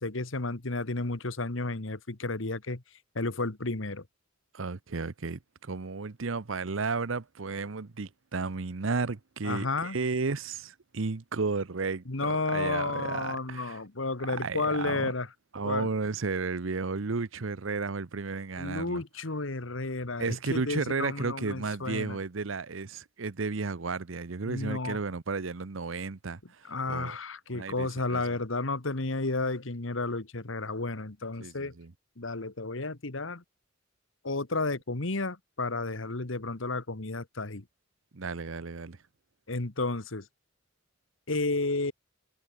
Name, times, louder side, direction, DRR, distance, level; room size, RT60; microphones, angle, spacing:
voice 1, 0.0-2.8 3.2-4.0 9.4-10.0 12.1-15.3 15.6-15.9 18.6-22.2 24.4-25.0 26.6-31.7 32.2-33.4 34.2-37.6 39.5-40.3 41.3-41.9, left 3 dB, 75° left, 1.7 m, -32 dB
voice 2, 4.5-13.8 14.3-15.1 15.5-19.0 20.2-27.2 27.5-28.2 31.4-31.9 38.1-39.0, right 4 dB, 80° right, 0.8 m, -33 dB
head